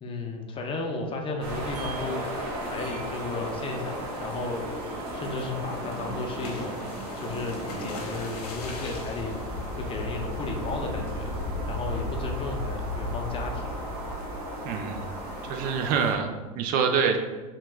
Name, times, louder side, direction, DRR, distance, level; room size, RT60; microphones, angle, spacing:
voice 1, 0.0-2.4 2.6-4.8 5.1-9.3 9.8-11.3 11.7-13.7, left 3 dB, 25° left, 2 dB, 0.5 m, -34 dB
sound 1, 1.4-16.1, equal, 75° right, 0.9 m, -34 dB
sound 2, 5.0-10.7 11.2-11.4 11.7-11.8 12.2-12.5, left 3 dB, 80° left, 0.6 m, -45 dB
voice 2, 14.6-15.1 15.5-16.3 16.6-17.2, right 6 dB, 50° right, 5 dB, 0.4 m, -25 dB
2.9 x 2.3 x 3.5 m, 1.2 s
hypercardioid pair, 100°, 19 cm